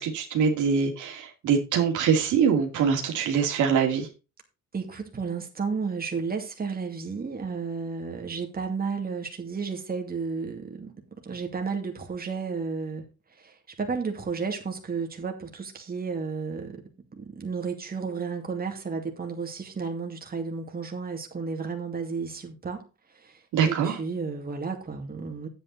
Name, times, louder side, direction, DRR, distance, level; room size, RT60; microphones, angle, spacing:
voice 1, 0.0-4.1 23.5-24.0, right 6 dB, 80° right, 2.4 m, -24 dB
voice 2, 4.7-13.0 13.4-16.8 17.1-22.9 23.1-23.4 23.6-25.5, right 5 dB, 30° right, 2.5 m, -32 dB
9.0 x 8.6 x 4.1 m
cardioid pair, 90°, 30 cm